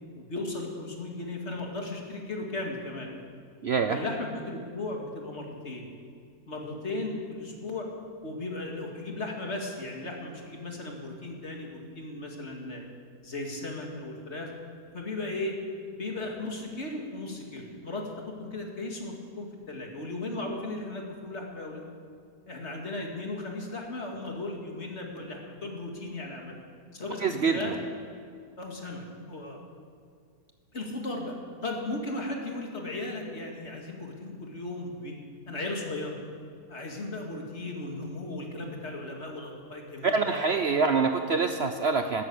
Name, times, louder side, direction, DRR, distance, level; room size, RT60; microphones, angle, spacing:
voice 1, 0.2-3.1 3.9-5.9 6.5-7.9 8.2-12.8 13.2-14.5 14.9-15.6 15.9-21.9 22.5-26.5 26.9-27.7 28.6-29.6 30.7-31.3 31.6-35.2 35.5-36.2 36.7-41.1, left 2 dB, 45° left, 0 dB, 2.5 m, -36 dB
voice 2, 3.6-4.0 27.2-27.8 40.0-42.2, right 4 dB, 55° right, 6 dB, 0.9 m, -25 dB
13.0 x 13.0 x 8.6 m, 2.2 s
omnidirectional pair, 1.6 m